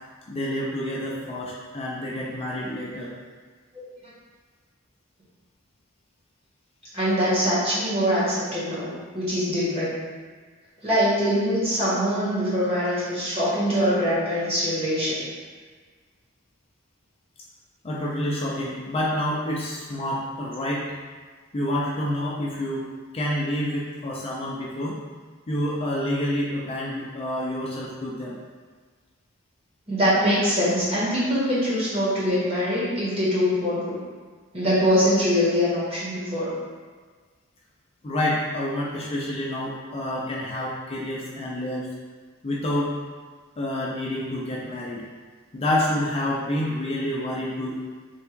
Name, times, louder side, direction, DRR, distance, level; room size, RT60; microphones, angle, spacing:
voice 1, 0.3-3.1 17.8-20.9 21.5-22.9 23.1-25.0 25.5-28.4 38.0-41.9 42.4-43.0 43.6-45.0 45.5-47.8, left 1 dB, 30° left, -5 dB, 0.5 m, -28 dB
voice 2, 6.9-10.0 10.8-15.2 29.9-34.0 34.5-36.6, equal, 30° right, -9 dB, 1.5 m, -23 dB
3.4 x 2.4 x 4.4 m, 1.5 s
head